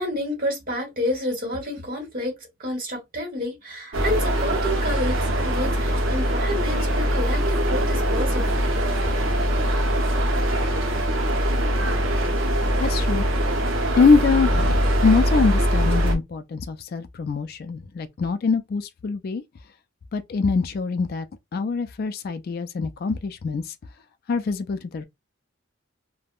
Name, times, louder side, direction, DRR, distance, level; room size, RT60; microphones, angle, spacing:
voice 1, 0.0-2.3 2.6-8.6 9.0-9.3, left 1 dB, 45° right, 1.3 m, -29 dB
sound 1, 3.9-16.1, equal, 70° right, 0.7 m, -22 dB
voice 2, 12.8-13.3 14.0-19.4 20.1-21.3 21.5-23.7 24.3-25.0, left 4 dB, 50° left, 0.3 m, -23 dB
3.4 x 2.1 x 2.3 m
head